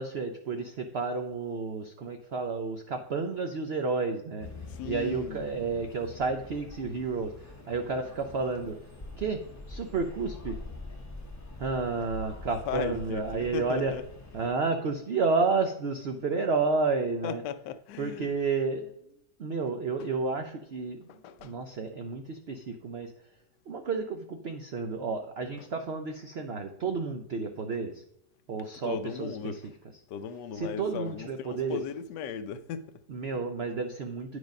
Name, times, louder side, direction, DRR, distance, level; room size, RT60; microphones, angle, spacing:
voice 1, 0.0-4.5 4.8-8.8 9.2-9.4 9.7-10.6 11.6-13.9 14.3-17.4 18.0-18.9 19.4-23.1 23.7-28.0 28.5-29.6 30.5-31.8 33.1-34.4, right 4 dB, 60° right, 0.6 m, -31 dB
sound 1, 4.4-14.5, left 3 dB, 15° left, 0.6 m, -45 dB
voice 2, 4.7-5.4 12.7-14.0 17.2-18.3 20.0-20.1 21.1-21.5 25.6-25.7 28.8-29.7 30.1-32.9, left 7 dB, 80° left, 1.2 m, -37 dB
9.1 x 4.8 x 5.2 m
omnidirectional pair, 1.8 m